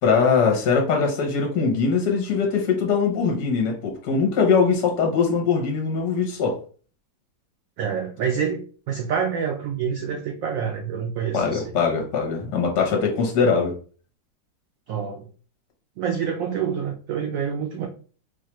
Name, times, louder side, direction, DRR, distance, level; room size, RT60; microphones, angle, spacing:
voice 1, 0.0-6.6 11.3-13.8, left 5 dB, 65° left, 1 dB, 1.3 m, -21 dB
voice 2, 7.8-11.7 14.9-15.3 16.0-17.9, right 7 dB, 90° right, 3 dB, 0.7 m, -27 dB
4.4 x 2.3 x 2.9 m, 0.39 s
omnidirectional pair, 2.0 m